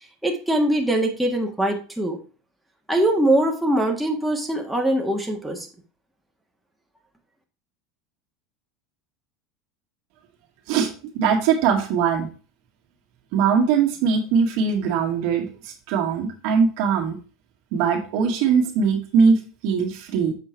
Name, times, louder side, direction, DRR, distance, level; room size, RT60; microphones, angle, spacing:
voice 1, 0.2-2.2 2.9-5.7, right 1 dB, 5° right, 0 dB, 1.5 m, -22 dB
voice 2, 11.1-12.3 13.3-17.2 17.7-20.3, right 6 dB, 65° right, 1 dB, 1.9 m, -21 dB
7.5 x 4.5 x 4.6 m, 0.37 s
supercardioid pair, 115°, 0 cm